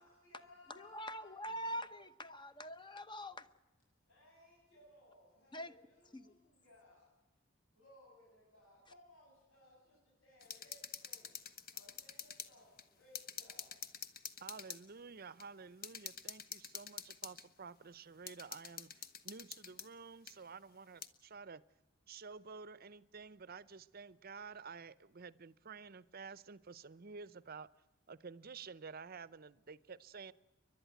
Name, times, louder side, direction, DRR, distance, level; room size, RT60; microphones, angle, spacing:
voice 1, 0.0-1.9 4.1-7.1 7.7-11.3 11.7-13.7, left 1 dB, 80° left, 8.0 m, -63 dB
voice 2, 0.8-3.4 5.5-5.7 6.1-6.3, equal, 25° left, 0.9 m, -44 dB
sound 1, 10.4-12.5 12.8-12.9 13.1-14.8 15.4-15.5 15.8-17.4 18.3-19.9 20.3-20.4 21.0-21.1, left 7 dB, 50° left, 1.2 m, -47 dB
voice 3, 14.4-21.6 22.1-27.7 28.1-30.3, right 5 dB, 50° right, 0.7 m, -51 dB
30.0 x 12.0 x 9.3 m
head